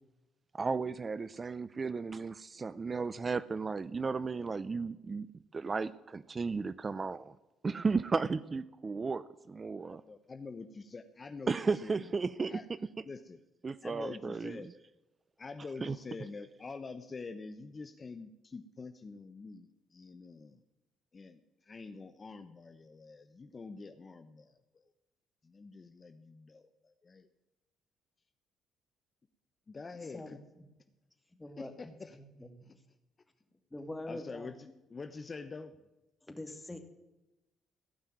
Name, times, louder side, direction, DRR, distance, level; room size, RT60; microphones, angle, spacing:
voice 1, 0.5-5.3 5.5-7.3 7.6-10.0 11.5-12.6 13.6-14.6 15.8-16.0, right 4 dB, 35° right, 16 dB, 0.5 m, -34 dB
voice 2, 9.8-12.1 12.5-12.6 13.0-13.4 13.8-14.7 15.4-20.6 21.1-24.9 25.4-27.3 29.7-30.4 31.6-32.2 32.6-32.8 34.1-35.7, left 4 dB, 35° left, 9 dB, 0.9 m, -46 dB
voice 3, 31.4-32.6 33.7-34.5 36.3-36.8, left 1 dB, 15° left, 6 dB, 2.4 m, -44 dB
16.5 x 5.6 x 9.3 m, 1.0 s
supercardioid pair, 60°, 0 cm